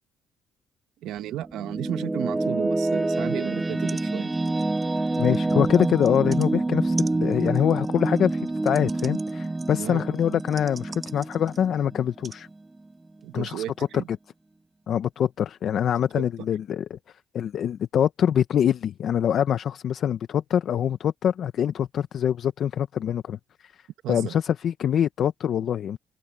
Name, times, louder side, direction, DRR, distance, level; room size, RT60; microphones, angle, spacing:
voice 1, 1.0-4.3 9.7-10.1 13.2-14.1 16.1-16.3 24.0-24.3, right 12 dB, 90° right, 1.0 m, -33 dB
sound 1, 1.2-12.5, right 2 dB, 15° right, 0.5 m, -27 dB
sound 2, 3.6-3.7 3.9-4.1 4.3-6.5 7.0-11.7 12.2-12.4 13.2-13.3, right 4 dB, 35° right, 2.0 m, -44 dB
voice 2, 5.2-12.5 13.3-13.9 14.9-17.0 17.3-23.8 24.1-26.0, left 9 dB, 65° left, 0.8 m, -24 dB
cardioid pair, 90°, 0 cm